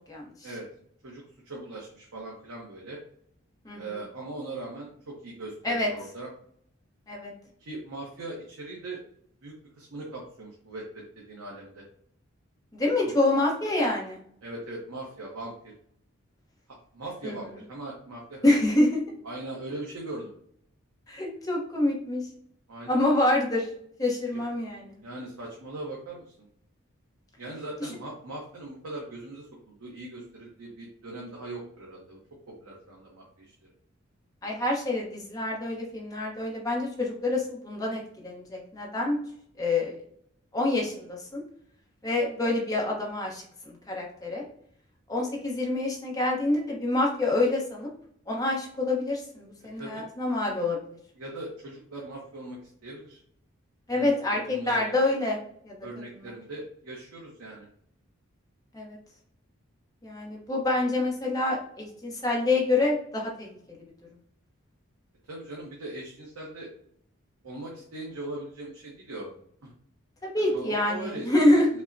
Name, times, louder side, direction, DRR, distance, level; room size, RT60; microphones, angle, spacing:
voice 1, 1.0-3.0 3.8-6.3 7.6-9.0 9.4-11.8 12.8-13.1 14.4-15.7 16.9-18.7 19.2-20.3 22.7-23.0 24.3-24.4 25.0-26.3 27.4-29.5 29.8-32.2 32.6-33.5 49.8-50.0 51.2-53.2 53.9-54.9 55.8-57.7 65.3-66.7 67.4-69.3 69.6-69.7 70.5-71.6, right 2 dB, 80° right, -3 dB, 0.8 m, -40 dB
voice 2, 12.7-14.2 17.2-17.4 18.4-19.0 21.1-22.2 22.9-23.7 24.0-24.9 27.8-27.9 34.4-39.2 39.6-40.0 40.5-41.4 42.0-44.4 45.1-47.9 48.3-50.8 53.9-55.4 55.6-55.7 58.7-59.0 60.0-63.8 70.2-71.7, left 2 dB, 15° left, -2 dB, 0.8 m, -26 dB
5.3 x 2.1 x 2.5 m, 0.65 s
head